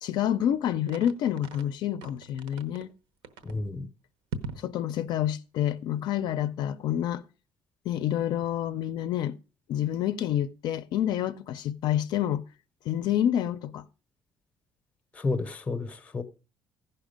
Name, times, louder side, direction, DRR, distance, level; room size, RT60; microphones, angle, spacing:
voice 1, 0.0-2.9 4.6-7.2 7.9-9.4 9.7-12.4 12.9-13.8, left 11 dB, 55° left, 0.4 m, -28 dB
sound 1, 0.9-1.7 2.0-2.9 3.2-3.6 4.3-4.7, right 4 dB, 85° right, 0.9 m, -39 dB
voice 2, 3.4-3.9 15.2-16.2, left 3 dB, 15° left, 0.6 m, -31 dB
15.0 x 5.7 x 5.0 m
cardioid pair, 180°, 9 cm